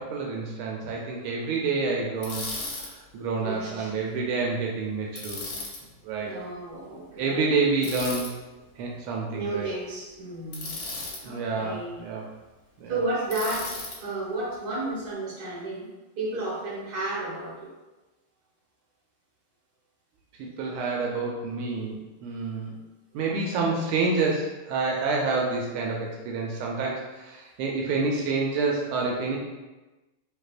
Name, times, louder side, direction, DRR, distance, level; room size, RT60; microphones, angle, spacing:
voice 1, 0.0-2.5 2.8-5.5 6.0-6.3 7.2-8.3 8.8-9.7 11.2-12.3 12.8-12.9 20.4-22.7 23.1-29.4, right 4 dB, 85° right, -1 dB, 1.5 m, -28 dB
Bicycle, 2.2-2.9 5.2-5.8 7.8-8.3 10.5-11.2 13.3-14.0, left 3 dB, 55° left, 1.1 m, -35 dB
voice 2, 3.4-4.1 6.3-7.4 8.9-9.0 9.3-10.8 11.2-12.0 12.9-15.9 16.2-17.7, right 2 dB, 50° right, -7 dB, 1.9 m, -32 dB
5.5 x 3.1 x 2.4 m, 1.1 s
omnidirectional pair, 2.3 m